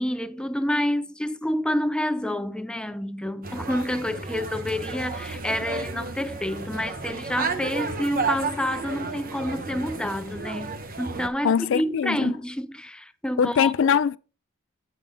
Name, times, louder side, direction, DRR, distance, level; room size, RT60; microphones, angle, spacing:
voice 1, 0.0-13.7, left 1 dB, 5° left, 0.5 m, -28 dB
sound 1, 3.4-11.3, right 4 dB, 45° right, 1.1 m, -32 dB
voice 2, 11.4-12.3 13.4-14.2, left 7 dB, 65° left, 0.4 m, -22 dB
8.9 x 6.1 x 3.7 m
head